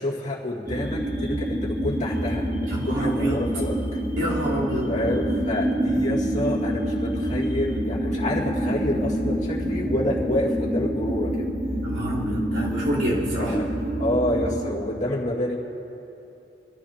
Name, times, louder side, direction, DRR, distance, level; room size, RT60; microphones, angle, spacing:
voice 1, 0.0-4.0 4.9-11.5 13.4-13.7 14.0-15.6, left 1 dB, 40° left, -5 dB, 2.1 m, -28 dB
sound 1, 0.7-14.6, equal, 10° right, 2.0 m, -27 dB
voice 2, 2.7-3.4 4.2-4.9 11.8-13.6, right 1 dB, 70° right, -8 dB, 3.9 m, -27 dB
25.0 x 14.5 x 2.9 m, 2.8 s
head